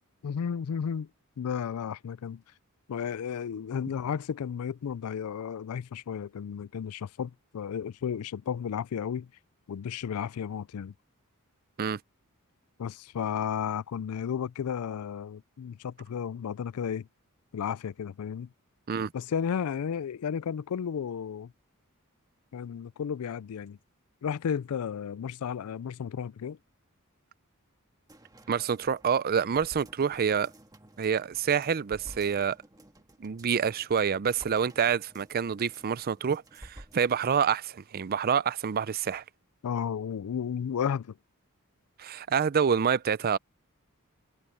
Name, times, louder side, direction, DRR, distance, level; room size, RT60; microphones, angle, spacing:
voice 1, 0.2-1.1 1.4-2.4 2.9-9.3 9.7-10.9 12.8-17.1 17.5-18.5 19.1-21.5 22.5-23.8 24.2-26.6 39.6-41.2, left 7 dB, 75° left, 0.4 m, -33 dB
sound 1, 28.1-37.5 37.9-38.0, right 1 dB, 15° right, 1.6 m, -53 dB
voice 2, 28.5-30.5 31.0-32.6 33.2-39.2 42.0-43.4, right 7 dB, 45° right, 0.5 m, -27 dB
head